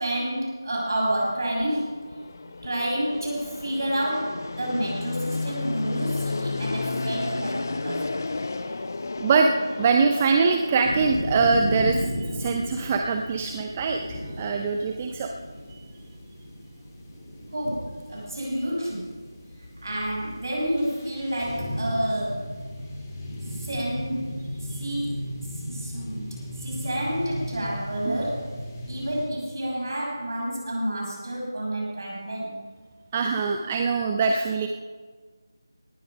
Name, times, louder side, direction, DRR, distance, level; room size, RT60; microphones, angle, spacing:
voice 1, 0.0-2.1 2.6-8.1 17.5-19.2 19.5-22.6 23.5-25.1 25.5-26.3 26.6-28.6 28.9-32.6, right 1 dB, 55° right, -2 dB, 6.4 m, -29 dB
Fixed-wing aircraft airplane, 1.0-11.2, left 3 dB, 45° left, 0.8 m, -32 dB
voice 2, 9.2-9.5 9.8-15.3 15.7-15.8 24.7-24.8 28.1-28.2 33.1-34.7, right 4 dB, 20° right, 4 dB, 0.6 m, -23 dB
sound 1, 10.8-29.2, equal, 25° left, 3.1 m, -35 dB
19.0 x 11.5 x 5.3 m, 1.4 s
figure-of-eight pair, 170°, 2 cm